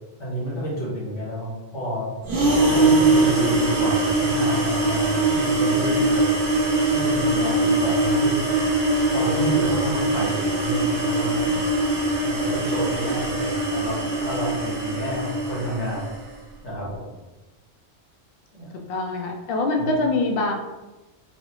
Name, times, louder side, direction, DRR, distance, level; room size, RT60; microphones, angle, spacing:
voice 1, 0.2-2.1 2.7-6.4 6.9-8.4 9.1-16.1 16.6-17.1 18.5-18.7 19.8-19.9, equal, 90° left, -6 dB, 1.7 m, -30 dB
sound 1, 2.2-16.2, right 2 dB, 85° right, 1.2 m, -22 dB
voice 2, 18.9-20.5, left 2 dB, 65° left, 2 dB, 0.7 m, -24 dB
4.2 x 2.1 x 2.9 m, 1.1 s
omnidirectional pair, 1.2 m